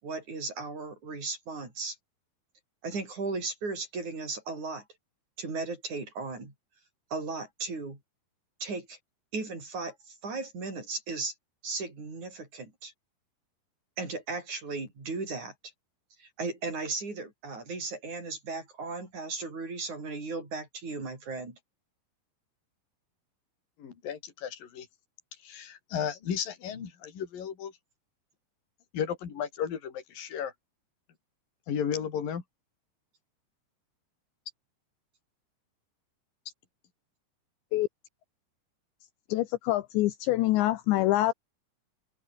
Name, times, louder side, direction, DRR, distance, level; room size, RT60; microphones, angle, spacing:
voice 1, 0.0-2.0 2.8-4.8 5.4-6.5 7.1-8.0 8.6-9.0 9.3-11.3 11.6-12.9 14.0-15.5 16.2-21.6, right 3 dB, 40° right, 8.3 m, -36 dB
voice 2, 23.8-24.9 25.4-27.7 28.9-30.5 31.7-32.4, left 8 dB, 50° left, 5.1 m, -34 dB
voice 3, 39.3-41.3, left 16 dB, 75° left, 3.1 m, -25 dB
omnidirectional pair, 5.4 m